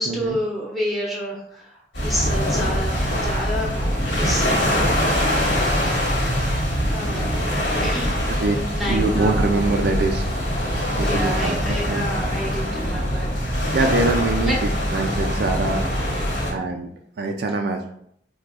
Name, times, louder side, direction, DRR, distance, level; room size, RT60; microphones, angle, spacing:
voice 1, 0.0-4.6 6.9-7.4 7.8-8.4 8.7-9.4 11.0-13.5 14.4-14.6 14.9-15.7 16.1-16.5, equal, ahead, -4 dB, 0.8 m, -30 dB
sound 1, 1.9-16.5, equal, 65° left, 1.4 m, -23 dB
voice 2, 8.9-10.3 10.9-12.1 13.7-15.8 16.5-16.9 17.2-17.9, right 2 dB, 60° right, 4 dB, 0.3 m, -24 dB
4.6 x 2.2 x 2.4 m, 0.69 s
head